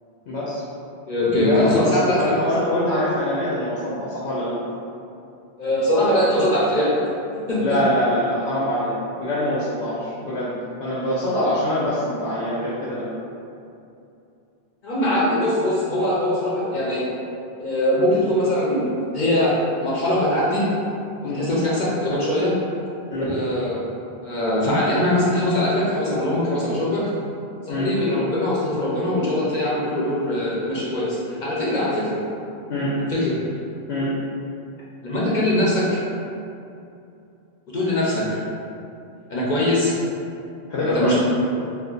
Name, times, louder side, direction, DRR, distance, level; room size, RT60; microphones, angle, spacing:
voice 1, 0.3-0.6 1.4-4.5 7.6-10.5 10.8-13.1 21.2-21.5 23.1-23.3 27.7-27.9 32.7-33.0 33.9-34.1 40.7-41.2, left 1 dB, 85° left, -8 dB, 1.0 m, -24 dB
voice 2, 1.1-2.4 5.6-6.9 7.3-7.8 14.8-17.1 17.6-20.7 21.2-22.6 23.2-23.9 24.2-27.1 27.7-32.2 33.0-33.4 35.0-35.9 37.7-38.2 39.3-39.9 40.8-41.2, left 1 dB, 50° left, -7 dB, 0.8 m, -22 dB
2.6 x 2.4 x 3.8 m, 2.6 s
omnidirectional pair, 1.1 m